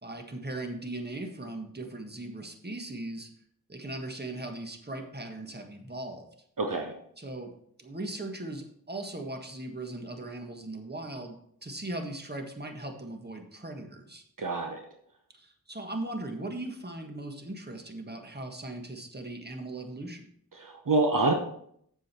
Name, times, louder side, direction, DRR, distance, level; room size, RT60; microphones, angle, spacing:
voice 1, 0.0-3.3 3.7-6.3 7.2-7.5 7.8-14.2 15.3-20.3, right 2 dB, 25° right, 4 dB, 1.6 m, -38 dB
voice 2, 6.6-6.9 14.4-14.8 20.6-21.3, right 3 dB, 60° right, 3 dB, 1.1 m, -26 dB
7.5 x 7.3 x 4.4 m, 0.67 s
cardioid pair, 45°, 37 cm